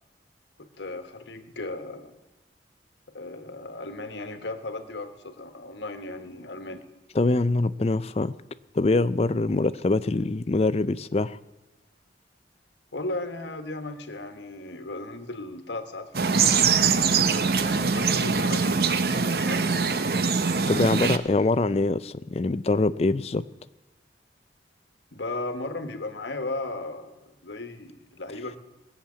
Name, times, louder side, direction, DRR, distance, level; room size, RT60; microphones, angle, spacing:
voice 1, 0.6-2.2 3.1-6.8 12.9-16.6 17.6-20.0 20.8-21.0 25.1-28.6, left 2 dB, 90° left, 8 dB, 1.4 m, -36 dB
voice 2, 7.1-8.3 8.7-11.4 20.7-23.4, left 2 dB, 35° left, 15 dB, 0.4 m, -24 dB
sound 1, 16.1-21.2, right 5 dB, 60° right, 0.7 m, -23 dB
18.5 x 7.3 x 8.5 m, 1.1 s
head